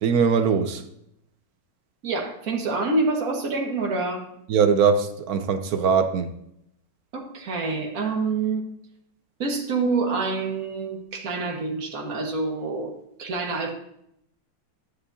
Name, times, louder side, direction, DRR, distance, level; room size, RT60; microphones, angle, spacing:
voice 1, 0.0-0.8 4.5-6.3, right 6 dB, 65° right, 1.0 m, -21 dB
voice 2, 2.0-4.3 7.1-8.7 9.4-12.9 13.2-13.7, right 3 dB, 50° right, 1.9 m, -27 dB
13.0 x 9.7 x 2.8 m
omnidirectional pair, 2.0 m